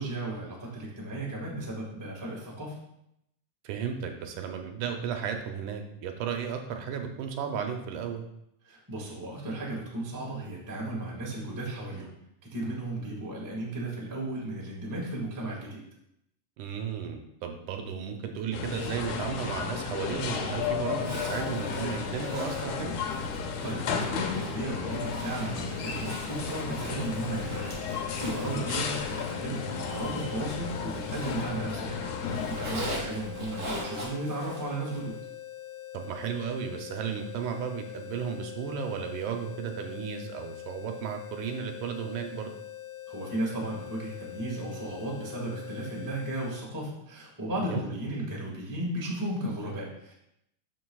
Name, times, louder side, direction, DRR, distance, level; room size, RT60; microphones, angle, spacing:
voice 1, 0.0-2.7 8.6-12.1 12.5-15.8 23.6-35.2 43.1-50.1, right 1 dB, 20° right, -3 dB, 0.4 m, -35 dB
voice 2, 3.6-8.2 16.6-22.9 28.5-28.8 35.9-42.5 47.6-47.8, right 7 dB, 80° right, 4 dB, 2.1 m, -34 dB
sound 1, 18.5-32.9, left 6 dB, 75° left, 2.2 m, -34 dB
Zipper (clothing), 21.0-31.9 32.2-35.1, equal, 40° right, 3.5 m, -42 dB
sound 2, 26.9-46.6, left 13 dB, 30° left, 0.7 m, -43 dB
12.5 x 4.7 x 2.3 m, 0.79 s
omnidirectional pair, 3.8 m